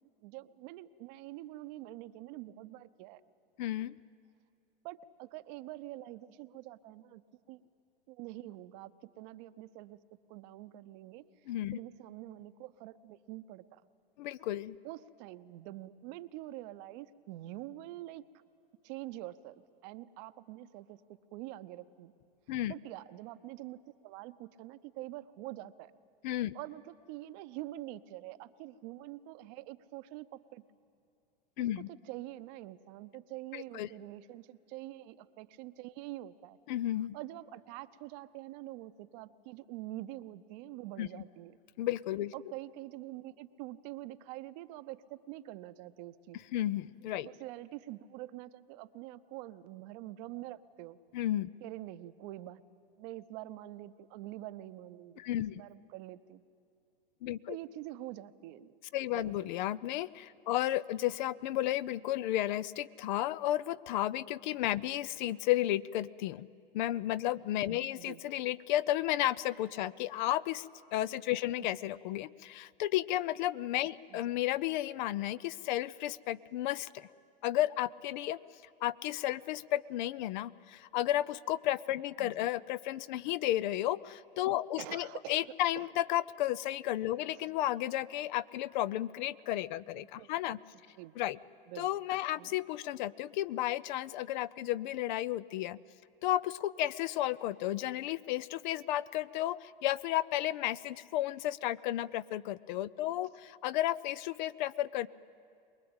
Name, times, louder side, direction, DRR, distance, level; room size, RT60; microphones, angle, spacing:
voice 1, 0.2-3.2 4.8-7.2 7.5-7.6 8.1-10.0 10.3-13.8 14.8-18.2 18.8-19.5 19.8-22.1 22.7-25.9 26.5-30.6 31.8-36.6 37.1-41.6 42.3-46.4 47.2-51.0 51.6-52.6 53.0-56.4 57.5-58.7 59.1-59.5 67.9-68.2 71.6-71.7 74.1-74.2 82.2-82.5 84.8-85.4 85.8-85.9 87.3-87.5 90.2-90.6 91.0-91.2 91.7-91.9 92.4-92.6, right 16 dB, 45° right, 13 dB, 0.8 m, -46 dB
voice 2, 3.6-3.9 11.5-11.8 14.2-14.8 22.5-22.7 26.2-26.5 31.6-31.9 33.5-33.9 36.7-37.1 41.0-41.1 41.8-42.3 46.5-47.3 51.1-51.5 55.2-55.6 57.2-57.6 58.9-66.5 66.7-70.7 70.9-77.1 77.4-78.4 78.8-90.6 91.2-91.4 91.8-95.8 96.2-105.1, left 14 dB, 50° left, 18 dB, 0.5 m, -33 dB
23.5 x 21.0 x 8.8 m, 2.4 s
hypercardioid pair, 105°, 29 cm